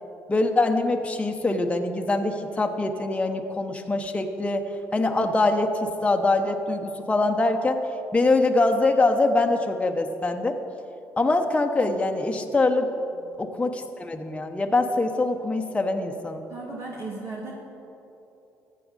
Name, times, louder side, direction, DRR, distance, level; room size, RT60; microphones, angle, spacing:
voice 1, 0.3-7.8 8.1-10.6 11.2-12.9 13.4-16.4, left 2 dB, 20° left, 4 dB, 0.9 m, -24 dB
voice 2, 16.5-17.5, right 3 dB, 55° right, -2 dB, 1.9 m, -36 dB
14.0 x 8.5 x 5.4 m, 3.0 s
supercardioid pair, 65°, 6 cm